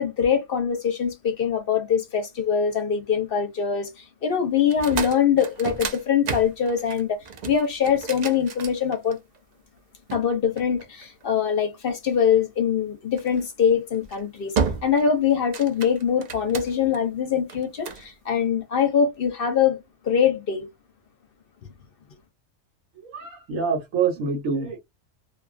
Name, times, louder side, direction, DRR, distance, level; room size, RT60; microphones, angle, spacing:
voice 1, 0.0-9.2 10.1-14.5 14.8-19.8 20.0-20.7, left 7 dB, 55° left, 0.7 m, -23 dB
sound 1, 4.6-9.4 10.1-11.4 13.2-13.4 13.9-14.2 14.6-15.1 15.4-17.0 17.5-18.1, right 5 dB, 60° right, 0.4 m, -32 dB
voice 2, 23.0-24.8, right 5 dB, 90° right, 1.3 m, -26 dB
2.5 x 2.3 x 2.4 m
omnidirectional pair, 1.3 m